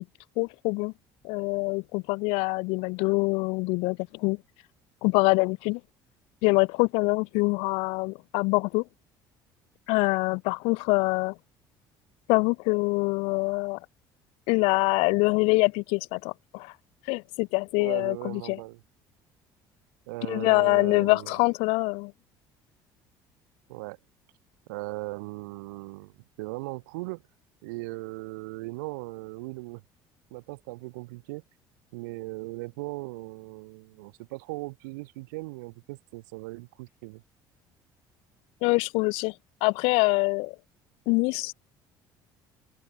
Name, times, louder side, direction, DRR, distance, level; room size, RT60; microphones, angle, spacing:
voice 1, 0.4-0.9 1.2-4.4 5.0-5.8 6.4-8.8 9.9-11.3 12.3-13.8 14.5-16.7 17.1-18.6 20.3-22.1 38.6-39.3 39.6-40.5 41.1-41.5, left 29 dB, 80° left, 0.6 m, -25 dB
voice 2, 17.8-18.8 20.1-21.4 23.7-24.0 24.7-27.2 27.6-29.8 30.3-31.4 31.9-37.2, right 24 dB, 90° right, 6.8 m, -38 dB
supercardioid pair, 80°, 10 cm